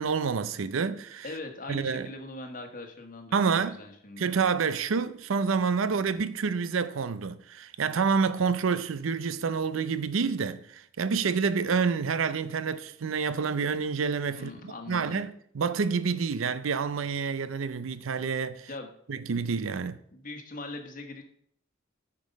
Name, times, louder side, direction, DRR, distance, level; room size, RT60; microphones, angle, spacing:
voice 1, 0.0-1.3 1.7-2.1 3.3-3.8 4.2-18.7 19.1-20.0, right 5 dB, 80° right, 0.5 m, -28 dB
voice 2, 1.2-4.2 14.3-15.2 18.7-18.9 20.1-21.2, left 2 dB, 45° left, 1.3 m, -41 dB
9.5 x 5.2 x 5.2 m
head